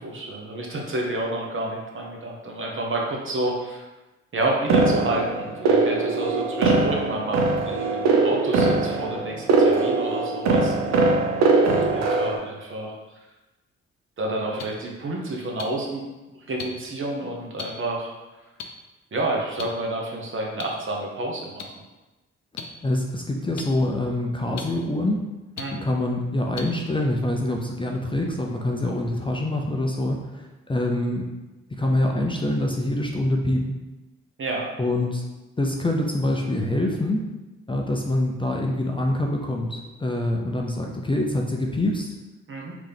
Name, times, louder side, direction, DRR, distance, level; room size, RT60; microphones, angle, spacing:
voice 1, 0.0-3.8 4.3-10.7 11.9-12.9 14.2-16.0 16.5-18.1 19.1-21.7 25.6-25.8 34.4-34.7 42.5-42.7, right 2 dB, 45° right, -1 dB, 1.0 m, -29 dB
sound 1, 4.7-12.4, right 3 dB, 65° right, 0.6 m, -21 dB
sound 2, 14.6-14.7 15.6-15.7 16.6-16.7 17.6-17.7 18.6-18.7 19.6-19.7 20.6-20.7 21.6-21.7 22.6-22.7 23.6-23.7 24.6-24.7 25.6-25.7 26.6-26.7 27.5-27.6, left 7 dB, 65° left, 0.6 m, -34 dB
voice 2, 22.8-25.2 25.8-31.2 31.7-33.8 34.8-35.3 35.6-37.2 37.7-42.1, left 1 dB, 15° left, 0 dB, 0.5 m, -25 dB
3.5 x 2.9 x 3.4 m, 1.1 s
supercardioid pair, 55°, 29 cm